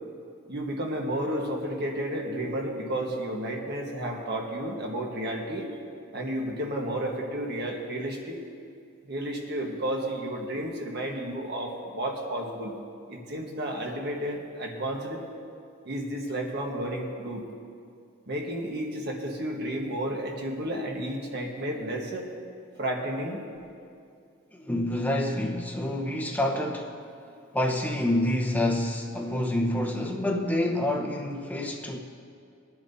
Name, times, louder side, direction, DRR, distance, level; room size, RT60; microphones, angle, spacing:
voice 1, 0.5-5.7 6.1-8.4 9.0-12.7 13.1-15.2 15.8-17.4 18.3-22.3 22.8-23.4, right 1 dB, 50° right, 0 dB, 1.4 m, -32 dB
voice 2, 24.6-27.0 27.5-32.0, left 1 dB, 10° left, 0 dB, 1.0 m, -27 dB
21.5 x 10.0 x 2.8 m, 2.4 s
head